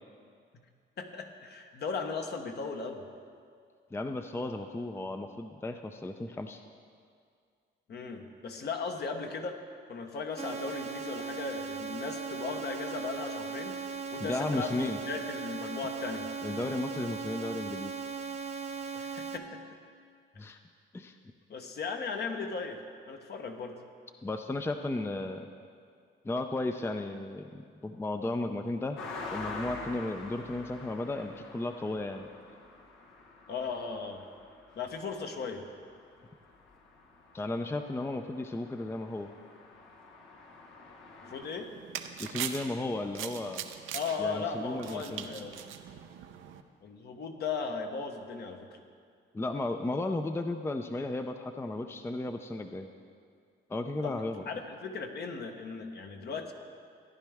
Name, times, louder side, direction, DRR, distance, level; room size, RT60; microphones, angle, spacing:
voice 1, 1.0-3.1 7.9-9.6 9.9-13.8 14.1-14.8 15.0-16.3 18.9-19.5 21.5-23.8 33.5-34.2 34.8-35.7 41.2-41.7 43.9-45.7 46.8-48.7 54.0-56.5, left 4 dB, 55° left, 4 dB, 1.1 m, -37 dB
voice 2, 3.9-6.6 14.2-15.0 16.4-17.9 20.4-20.6 20.9-21.2 24.2-25.5 26.2-29.0 29.3-32.3 37.3-39.3 42.2-43.6 44.2-45.3 49.3-52.9 53.7-54.4, left 2 dB, 10° left, 7 dB, 0.5 m, -34 dB
sound 1, 10.4-19.4, right 5 dB, 35° right, 0.9 m, -38 dB
sound 2, 29.0-41.5, left 3 dB, 80° left, 1.4 m, -47 dB
sound 3, 41.4-46.6, right 9 dB, 85° right, 0.6 m, -41 dB
14.5 x 10.0 x 3.5 m, 2.2 s
cardioid pair, 90°, 20 cm